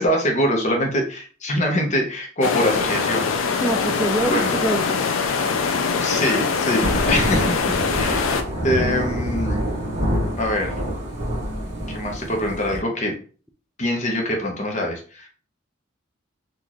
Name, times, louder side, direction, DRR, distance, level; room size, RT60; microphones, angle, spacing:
voice 1, 0.0-3.3 4.2-4.5 6.0-7.6 8.0-9.6 10.4-10.7 11.9-13.2 13.8-15.3, left 1 dB, 35° left, 1 dB, 0.9 m, -24 dB
sound 1, 2.4-8.4, left 5 dB, 85° left, 0.5 m, -23 dB
voice 2, 3.6-5.5 7.7-7.8, right 1 dB, 5° right, 0 dB, 0.3 m, -26 dB
Thunder / Rain, 6.8-12.8, equal, 35° right, 1.2 m, -26 dB
3.9 x 2.5 x 3.0 m, 0.40 s
head